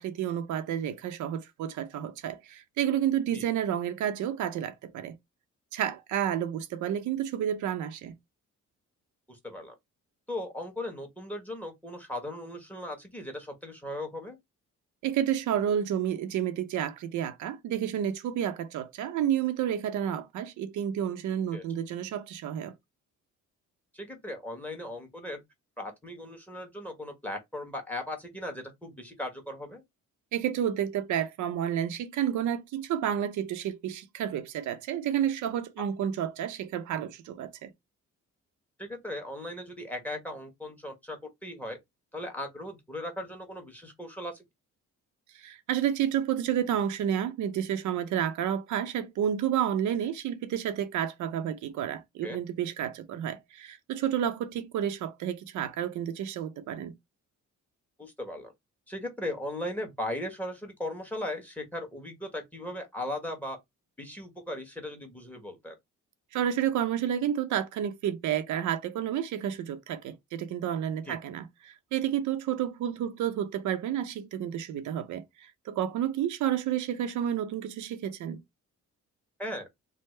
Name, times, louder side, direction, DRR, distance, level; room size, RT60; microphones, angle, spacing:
voice 1, 0.0-5.2 5.7-8.1 15.0-22.7 30.3-37.7 45.3-56.9 66.3-78.4, right 10 dB, 75° right, 0.6 m, -30 dB
voice 2, 9.3-9.7 10.3-14.4 21.5-21.6 23.9-25.4 25.8-29.8 38.8-41.8 42.1-44.4 52.2-52.4 58.0-58.5 58.9-63.6 64.0-65.7 71.1-71.2 79.4-79.7, left 1 dB, 5° left, 1.2 m, -37 dB
3.3 x 2.0 x 3.2 m
cardioid pair, 90°, 30 cm